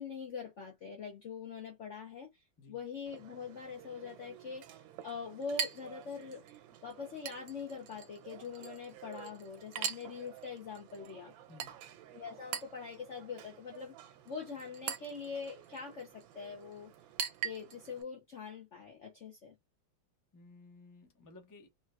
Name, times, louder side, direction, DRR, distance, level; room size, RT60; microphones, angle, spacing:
voice 1, 0.0-2.3 2.7-6.4 6.8-11.3 12.1-16.9 17.4-19.5, left 5 dB, 60° left, 0.8 m, -43 dB
Chink clink, 3.1-18.0, right 8 dB, 90° right, 1.4 m, -44 dB
voice 2, 20.3-21.7, left 3 dB, 20° left, 0.5 m, -56 dB
3.4 x 2.7 x 2.3 m
omnidirectional pair, 2.1 m